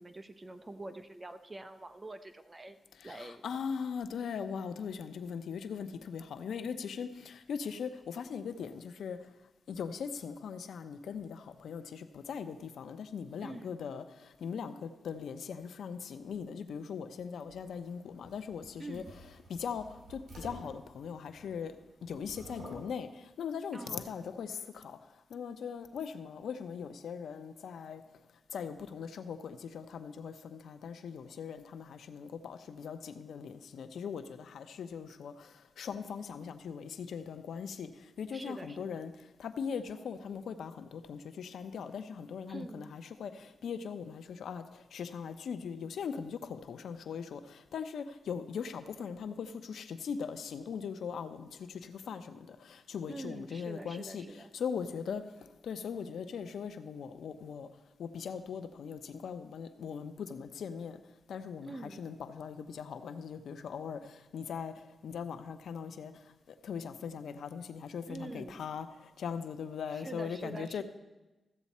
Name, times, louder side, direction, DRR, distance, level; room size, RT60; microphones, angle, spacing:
voice 1, 0.0-2.8 3.0-3.4 13.4-13.8 18.8-19.1 23.7-24.1 38.3-39.0 42.5-42.9 53.1-54.5 61.6-62.0 68.1-68.7 69.9-70.8, right 2 dB, 20° right, 10 dB, 0.6 m, -45 dB
voice 2, 3.0-9.2 9.7-14.0 14.4-19.0 19.5-19.8 20.1-21.8 22.0-23.1 23.4-25.0 25.3-28.0 28.5-35.3 35.8-37.9 38.2-39.1 39.4-44.6 44.9-51.5 51.8-55.2 55.6-57.7 58.0-61.0 61.3-64.7 65.0-66.1 66.6-68.9 69.2-70.8, left 6 dB, 85° left, 10 dB, 0.6 m, -40 dB
sound 1, 17.5-21.7 22.0-22.9, equal, 70° right, 3.8 m, -50 dB
14.5 x 8.1 x 4.2 m, 1.1 s
wide cardioid pair, 110°, 0 cm